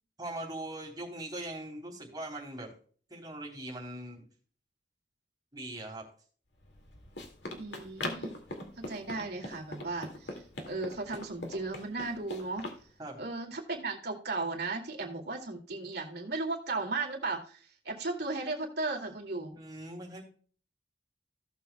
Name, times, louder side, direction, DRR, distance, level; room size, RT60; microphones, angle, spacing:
voice 1, 0.2-2.7 3.1-4.3 5.5-6.1 13.0-13.2 19.5-20.2, right 1 dB, 25° right, 0 dB, 3.3 m, -41 dB
Run, 6.6-12.8, left 1 dB, 70° left, 2.2 m, -42 dB
voice 2, 7.6-8.4 8.8-12.6 13.2-19.5, right 3 dB, 65° right, 2 dB, 2.4 m, -36 dB
16.5 x 7.2 x 2.2 m, 0.43 s
head